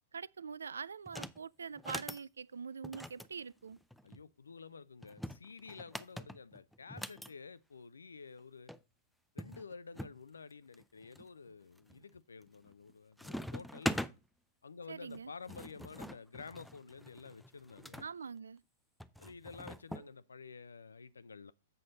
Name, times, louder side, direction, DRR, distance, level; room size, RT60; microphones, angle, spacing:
voice 1, 0.1-3.8 14.9-15.3 18.0-18.6, right 6 dB, 75° right, 0.3 m, -44 dB
sound 1, 1.1-1.4 1.8-2.2 2.8-4.2 5.0-7.3 8.4-8.5 8.7-8.8 9.4-10.2 10.7-11.2 11.8-12.2 12.5-12.9 13.2-14.1 15.1-18.1 19.0-20.1, equal, ahead, 0.4 m, -43 dB
voice 2, 4.0-8.7 9.3-13.9 14.6-18.1 19.2-21.5, left 5 dB, 80° left, 0.5 m, -51 dB
7.9 x 6.3 x 4.0 m
figure-of-eight pair, 105°, 0 cm